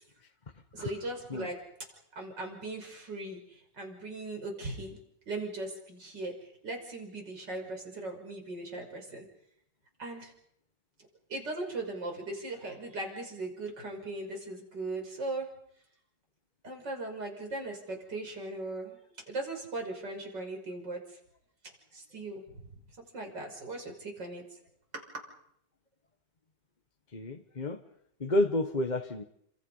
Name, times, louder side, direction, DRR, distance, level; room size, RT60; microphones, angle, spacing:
voice 1, 0.7-1.6 1.9-5.0 5.3-9.3 10.0-10.3 11.3-15.5 16.6-21.2 21.9-22.8 23.1-24.6 24.9-25.2, right 2 dB, 85° right, 2 dB, 6.3 m, -39 dB
voice 2, 27.1-27.8 28.2-29.2, left 1 dB, 30° left, 6 dB, 1.3 m, -30 dB
29.0 x 26.5 x 5.6 m, 0.69 s
omnidirectional pair, 1.9 m